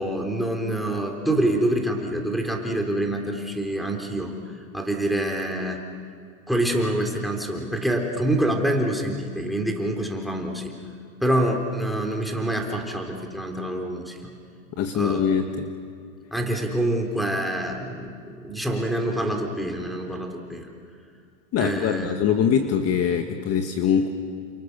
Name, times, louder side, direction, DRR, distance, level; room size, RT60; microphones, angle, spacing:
voice 1, 0.0-4.4 4.7-5.8 6.5-10.7 11.2-14.3 14.9-15.2 16.3-20.7 21.6-22.1, right 1 dB, ahead, 3 dB, 3.5 m, -26 dB
voice 2, 14.8-15.7 21.5-24.1, left 7 dB, 35° left, 6 dB, 1.6 m, -23 dB
29.5 x 27.5 x 6.8 m, 2.2 s
supercardioid pair, 130°, 43 cm